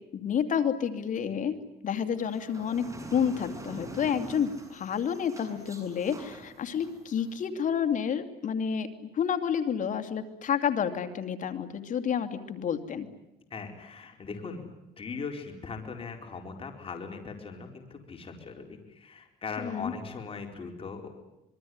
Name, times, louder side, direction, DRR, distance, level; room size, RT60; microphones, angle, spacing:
voice 1, 0.1-1.5 1.8-8.9 9.1-13.1 19.6-19.9, left 8 dB, 50° left, 8 dB, 2.6 m, -29 dB
sound 1, 2.2-7.4, right 2 dB, 20° right, 7.1 m, -45 dB
voice 2, 13.5-14.7 15.0-21.1, left 4 dB, 35° left, 4 dB, 4.6 m, -39 dB
26.0 x 22.5 x 9.6 m, 0.89 s
cardioid pair, 110°, 17 cm